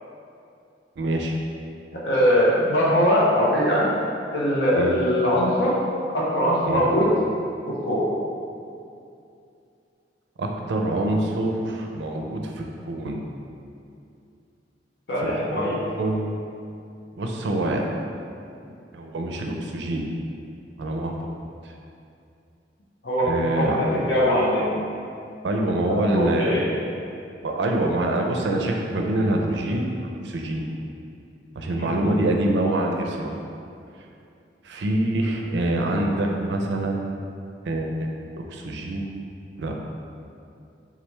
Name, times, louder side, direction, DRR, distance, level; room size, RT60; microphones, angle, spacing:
voice 1, 1.0-1.4 4.7-4.9 6.6-6.8 10.4-13.2 15.2-16.4 17.2-17.8 18.9-20.1 20.8-21.2 23.2-23.8 25.4-26.6 27.4-30.7 31.5-33.3 34.6-37.2 37.7-38.1 38.5-39.2 39.6-39.7, right 1 dB, 75° right, 1 dB, 0.4 m, -25 dB
voice 2, 2.0-3.9 4.3-5.7 6.1-7.2 7.7-8.1 15.1-15.8 23.0-24.7 25.8-26.8 31.8-32.0, equal, 70° left, -6 dB, 0.7 m, -21 dB
3.6 x 3.3 x 3.0 m, 2.6 s
head